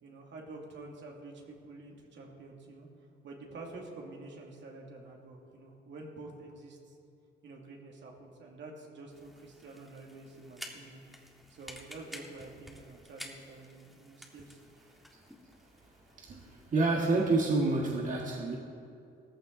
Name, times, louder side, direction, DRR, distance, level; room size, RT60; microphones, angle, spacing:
voice 1, 0.0-2.9 3.2-7.0 7.4-11.0 11.5-14.6 16.3-16.5, right 2 dB, 65° right, 0 dB, 2.5 m, -48 dB
sound 1, 9.1-17.2, equal, ahead, 2.0 m, -51 dB
voice 2, 16.7-18.6, right 3 dB, 40° right, -2 dB, 1.7 m, -28 dB
16.0 x 14.5 x 3.9 m, 2.6 s
cardioid pair, 90°, 20 cm